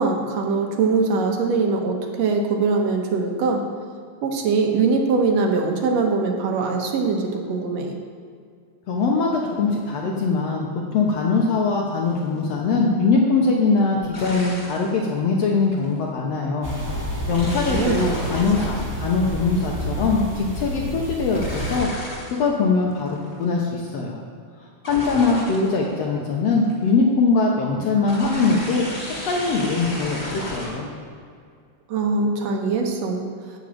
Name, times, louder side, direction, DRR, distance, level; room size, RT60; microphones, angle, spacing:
voice 1, 0.0-3.6 4.2-7.9 17.7-18.0 31.9-33.2, right 4 dB, 65° right, 2 dB, 2.0 m, -22 dB
voice 2, 8.9-16.7 17.3-21.9 22.3-24.2 24.8-28.9 29.2-30.9, left 4 dB, 65° left, -1 dB, 1.9 m, -22 dB
sound 1, 12.1-12.3 14.0-14.9 15.6-15.9 17.3-20.3 21.3-22.5 22.8-23.4 24.8-25.9 26.3-26.9 28.1-30.7, equal, 20° left, 3.0 m, -33 dB
sound 2, 16.6-21.8, equal, 5° right, 1.5 m, -29 dB
12.0 x 5.2 x 8.5 m, 2.2 s
omnidirectional pair, 3.5 m